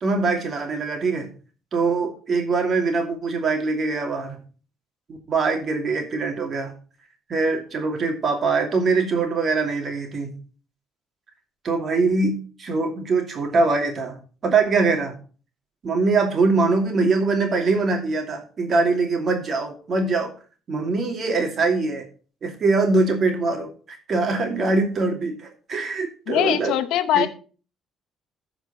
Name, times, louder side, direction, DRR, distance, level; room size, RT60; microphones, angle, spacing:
voice 1, 0.0-1.3 1.7-4.4 5.3-6.7 7.3-10.4 11.6-15.2 15.8-20.3 20.7-22.1 22.4-26.8 27.1-27.3, right 3 dB, 50° right, 3 dB, 2.6 m, -23 dB
voice 2, 26.3-27.3, left 12 dB, 80° left, 11 dB, 0.9 m, -21 dB
14.5 x 5.0 x 4.2 m, 0.38 s
cardioid pair, 85°, 0 cm